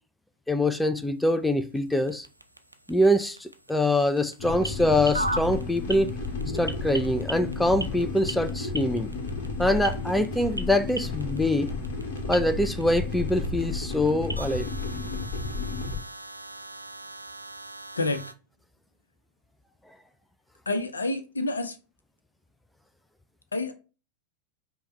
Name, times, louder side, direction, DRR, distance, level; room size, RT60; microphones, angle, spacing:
voice 1, 0.5-2.3 2.9-6.1 6.5-9.1 9.6-11.7 12.3-14.7, left 1 dB, 5° left, 0.4 m, -24 dB
sound 1, 0.9-18.3, right 1 dB, 85° right, 0.4 m, -40 dB
sound 2, 4.4-16.0, left 3 dB, 55° left, 1.2 m, -32 dB
voice 2, 20.7-21.8 23.5-23.7, left 2 dB, 75° left, 0.7 m, -28 dB
5.3 x 2.3 x 4.2 m
figure-of-eight pair, 90°, 0 cm